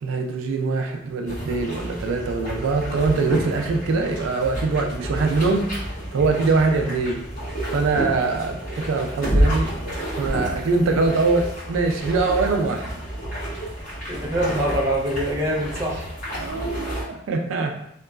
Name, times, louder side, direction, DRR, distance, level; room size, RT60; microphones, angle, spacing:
voice 1, 0.0-5.7 6.1-7.2 7.7-9.7 10.2-12.9 16.4-17.7, right 3 dB, 80° right, 4 dB, 0.3 m, -23 dB
sound 1, 1.3-17.0, equal, 40° left, 1.2 m, -29 dB
voice 2, 14.1-16.1, right 1 dB, 15° right, -4 dB, 0.5 m, -24 dB
2.8 x 2.3 x 2.3 m, 0.76 s
head